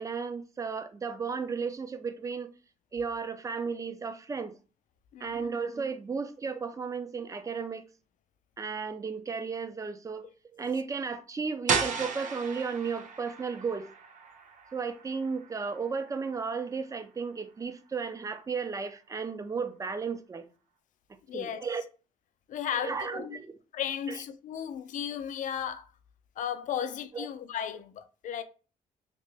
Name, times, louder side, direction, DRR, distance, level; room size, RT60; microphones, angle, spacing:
voice 1, 0.0-2.5 2.9-4.5 5.2-7.8 8.6-10.3 10.5-13.9 14.7-20.4 21.3-21.8 22.8-23.6 24.1-24.2 27.1-27.3, right 5 dB, 20° right, 0.4 m, -34 dB
sound 1, 11.7-17.3, right 6 dB, 60° right, 0.7 m, -35 dB
voice 2, 21.3-21.6 22.5-23.4 23.7-25.9 26.4-28.4, left 9 dB, 60° left, 0.5 m, -35 dB
2.9 x 2.9 x 3.3 m
cardioid pair, 100°, 15 cm